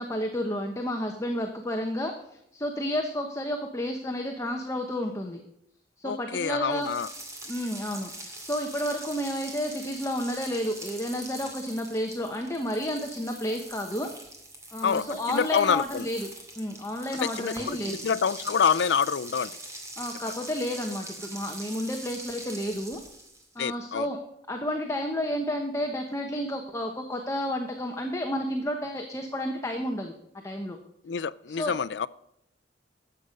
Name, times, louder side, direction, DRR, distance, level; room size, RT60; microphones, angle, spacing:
voice 1, 0.0-2.1 2.5-5.4 6.0-6.9 7.5-14.1 14.7-16.3 16.6-18.0 20.0-23.0 23.5-24.2 24.5-30.1 30.4-30.8 31.5-31.7, equal, 15° left, 3 dB, 1.0 m, -31 dB
voice 2, 6.0-7.1 14.8-16.1 17.2-19.5 23.6-24.1 31.0-32.1, left 6 dB, 70° left, 16 dB, 0.4 m, -27 dB
sound 1, 6.7-23.5, right 1 dB, 15° right, 2.3 m, -43 dB
13.0 x 8.1 x 5.2 m, 0.78 s
head